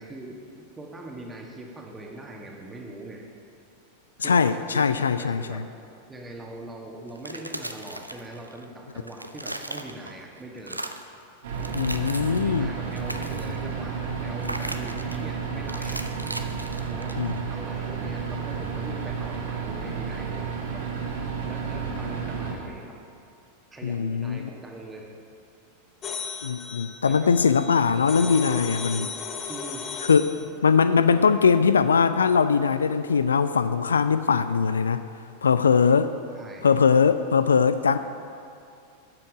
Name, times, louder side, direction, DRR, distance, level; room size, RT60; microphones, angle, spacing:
voice 1, 0.0-3.3 4.2-5.7 6.1-10.8 12.4-16.1 16.9-17.2 17.5-20.9 21.5-23.0 23.7-25.1 27.1-27.5 29.5-29.9 35.7-35.9 36.3-36.7, right 2 dB, 15° right, 0 dB, 1.6 m, -42 dB
voice 2, 4.2-5.6 11.7-12.7 17.2-17.3 23.8-24.5 26.4-29.1 30.0-30.2 30.6-35.0 35.4-36.1 36.6-38.0, left 6 dB, 70° left, 12 dB, 0.3 m, -21 dB
sound 1, 7.1-8.6 8.9-10.2 10.6-11.1 11.5-12.5 12.8-13.6 14.4-15.2 15.7-17.4, right 1 dB, 85° right, 0.5 m, -37 dB
sound 2, 11.4-22.5, right 6 dB, 60° right, 1.9 m, -31 dB
sound 3, 26.0-30.5, left 6 dB, 25° left, 1.0 m, -36 dB
12.0 x 7.7 x 5.0 m, 2.4 s
figure-of-eight pair, 90°, 0 cm